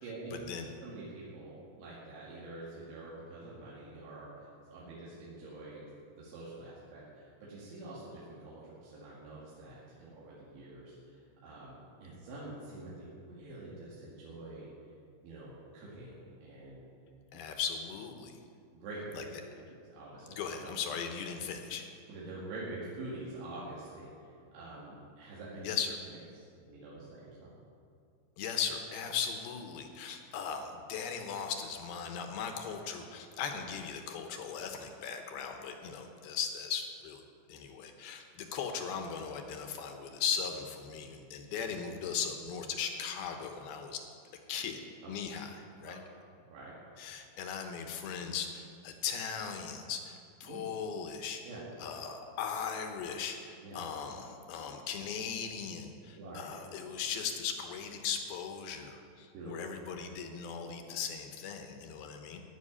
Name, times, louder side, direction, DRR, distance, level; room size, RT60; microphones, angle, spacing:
voice 1, 0.0-0.4 0.8-5.8 6.2-14.7 15.2-16.8 18.7-19.2 19.6-20.4 22.1-24.3 24.5-25.7 26.3-27.5 45.0-45.1 45.8-46.0 46.5-46.7 50.5-50.6 51.4-51.6 53.6-53.8 56.1-56.5 59.3-59.5, right 2 dB, 85° right, -7 dB, 4.5 m, -46 dB
voice 2, 17.3-18.3 19.1-19.2 20.3-21.8 25.6-26.0 28.4-44.0 44.5-44.8 45.1-46.0 47.0-51.4 51.8-62.4, left 7 dB, 70° left, 5 dB, 2.6 m, -38 dB
15.5 x 5.9 x 9.9 m, 2.3 s
omnidirectional pair, 5.1 m